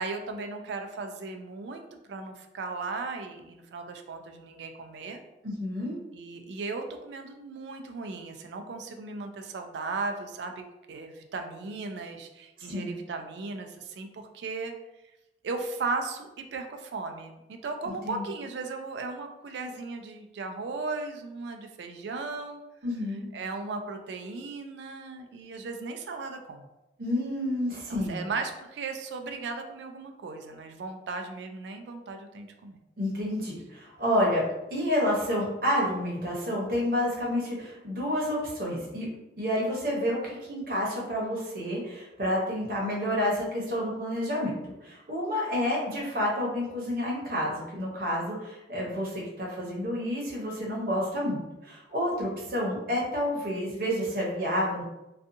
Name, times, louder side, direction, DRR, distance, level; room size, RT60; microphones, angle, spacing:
voice 1, 0.0-5.2 6.1-14.7 15.4-22.6 23.3-26.7 27.9-32.8, right 3 dB, 75° right, 5 dB, 0.3 m, -36 dB
voice 2, 5.4-5.9 12.6-12.9 17.8-18.2 22.8-23.3 27.0-28.2 33.0-39.1 39.4-54.8, left 1 dB, 50° right, -4 dB, 0.8 m, -29 dB
2.6 x 2.3 x 2.5 m, 0.96 s
head